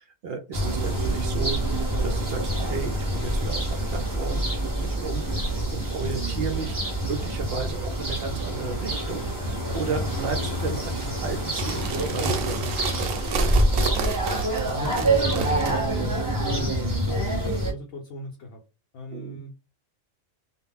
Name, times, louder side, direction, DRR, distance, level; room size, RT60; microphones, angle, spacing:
voice 1, 0.0-6.8 7.0-13.6 16.8-17.0 19.1-19.4, right 5 dB, 65° right, 0.7 m, -34 dB
sound 1, 0.5-17.7, right 1 dB, 20° right, 0.7 m, -26 dB
sound 2, 11.5-15.7, right 5 dB, 90° right, 1.0 m, -31 dB
voice 2, 14.6-18.6 18.9-19.5, left 1 dB, 65° left, 0.8 m, -39 dB
2.3 x 2.0 x 3.5 m
omnidirectional pair, 1.3 m